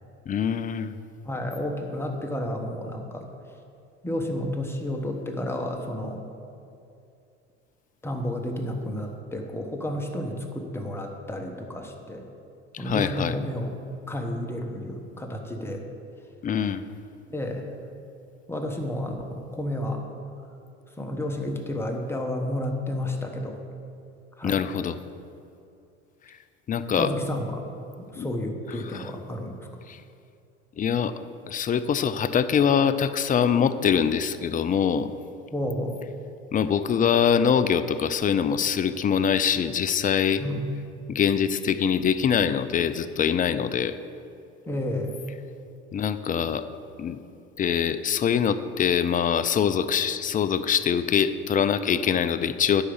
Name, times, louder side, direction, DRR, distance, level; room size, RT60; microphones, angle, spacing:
voice 1, 0.3-1.0 12.7-13.4 16.4-16.8 24.4-25.0 26.7-27.1 28.2-28.3 28.9-29.1 29.9-30.0 30.8-31.1 31.5-35.1 36.5-40.4 41.1-44.0 45.9-46.7 47.0-47.2 47.6-52.8, left 7 dB, 25° left, 12 dB, 0.4 m, -24 dB
voice 2, 1.2-3.3 4.0-6.2 8.0-12.2 12.8-13.7 14.1-15.8 17.3-17.7 18.5-19.2 19.5-20.1 21.0-23.6 24.4-24.6 27.0-27.6 28.0-29.7 35.5-36.0 40.4-40.7 44.7-45.2, left 1 dB, 5° left, 2 dB, 1.3 m, -31 dB
10.0 x 4.8 x 7.2 m, 2.6 s
hypercardioid pair, 80°, 36 cm